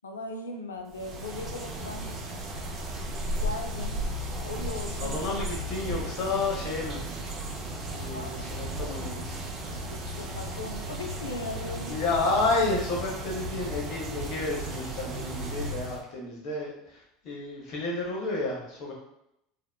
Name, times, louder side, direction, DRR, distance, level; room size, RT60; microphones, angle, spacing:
voice 1, 0.0-2.5 3.4-4.0 4.3-5.2 8.1-8.7 9.9-12.0, left 2 dB, 90° left, 4 dB, 0.3 m, -39 dB
sound 1, 0.9-16.0, right 1 dB, 45° right, 0.5 m, -35 dB
voice 2, 5.0-7.0 7.9-9.4 11.9-18.9, left 3 dB, 55° left, -2 dB, 0.9 m, -31 dB
2.8 x 2.0 x 2.3 m, 0.80 s
hypercardioid pair, 80°, 0 cm